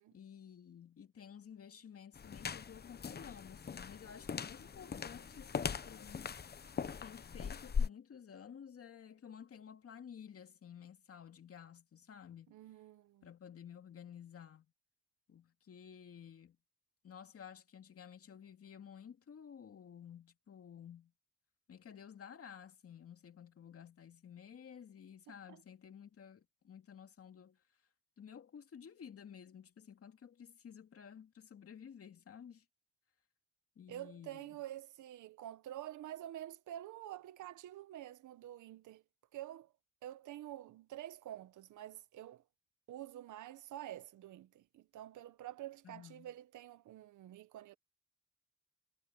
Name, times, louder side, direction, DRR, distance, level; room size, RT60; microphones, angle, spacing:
voice 1, 0.1-6.3 7.0-12.5 13.2-14.7 15.3-16.6 17.0-21.1 21.7-27.6 28.2-32.6 33.8-34.6 45.8-46.3, left 8 dB, 50° left, 2.5 m, -53 dB
sound 1, 2.2-7.9, left 6 dB, 35° left, 1.0 m, -40 dB
voice 2, 12.5-13.3 25.5-25.6 33.9-39.0 39.3-39.7 40.0-42.4 42.9-47.7, right 13 dB, 75° right, 1.4 m, -48 dB
cardioid pair, 90°, 30 cm